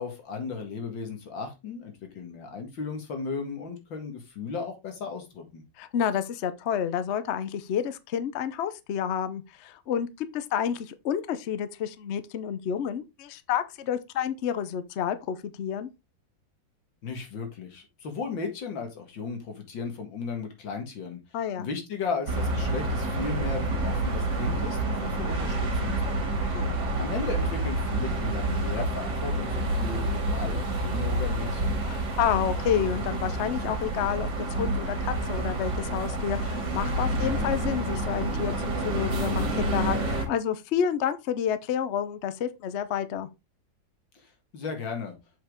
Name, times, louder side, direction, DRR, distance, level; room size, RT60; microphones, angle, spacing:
voice 1, 0.0-5.6 17.0-21.2 21.6-26.5 27.0-31.8 37.1-37.5 44.2-45.1, left 5 dB, 80° left, 2.4 m, -35 dB
voice 2, 5.8-15.9 21.3-21.7 26.5-26.8 31.9-43.3, left 8 dB, 60° left, 0.7 m, -29 dB
sound 1, 22.3-40.2, right 2 dB, 65° right, 2.7 m, -28 dB
7.3 x 5.2 x 3.6 m
omnidirectional pair, 2.0 m